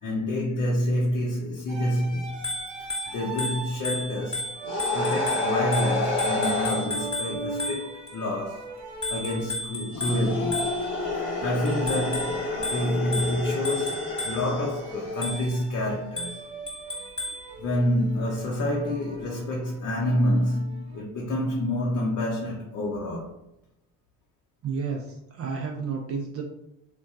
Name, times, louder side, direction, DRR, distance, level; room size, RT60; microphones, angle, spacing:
voice 1, 0.0-2.4 3.1-4.5 4.9-8.8 9.1-10.7 11.1-16.4 17.3-23.4, left 1 dB, 40° left, 0.7 m, -28 dB
sound 1, 1.7-21.0, right 1 dB, 65° right, 0.8 m, -41 dB
Bicycle bell, 2.3-8.1 9.0-11.1 11.7-14.6 15.2-15.6 16.2-17.5, left 1 dB, 15° left, 1.1 m, -34 dB
sound 2, 4.6-6.9 9.9-15.5, left 2 dB, 85° left, 1.0 m, -29 dB
voice 2, 24.6-26.4, right 5 dB, 35° right, 0.4 m, -31 dB
3.0 x 2.2 x 2.3 m
hypercardioid pair, 65°, 46 cm